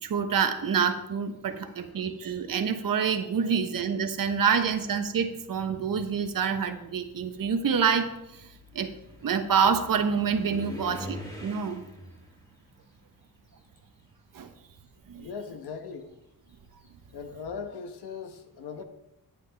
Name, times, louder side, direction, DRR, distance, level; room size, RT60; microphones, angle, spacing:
voice 1, 0.0-8.5 8.7-8.9 9.2-11.8 14.3-14.5 15.1-15.3, right 6 dB, 60° right, 1.1 m, -27 dB
sound 1, 2.2-2.8 3.7-3.8 4.4-14.3 14.6-17.2, equal, 10° left, 2.7 m, -46 dB
voice 2, 15.2-16.1 17.1-18.8, left 5 dB, 90° left, 1.2 m, -39 dB
10.5 x 9.5 x 3.5 m
cardioid pair, 95°, 38 cm